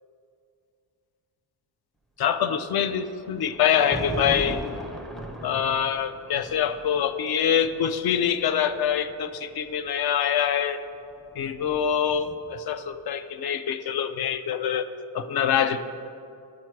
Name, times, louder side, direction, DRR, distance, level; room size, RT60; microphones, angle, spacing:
voice 1, 2.2-4.6 5.4-10.8 11.4-14.9 15.1-15.8, left 8 dB, 55° left, 11 dB, 0.5 m, -25 dB
Thunder, 2.7-9.9 10.9-12.7, right 1 dB, ahead, 0.4 m, -38 dB
12.5 x 4.6 x 4.6 m, 2.6 s
wide cardioid pair, 160°, 45 cm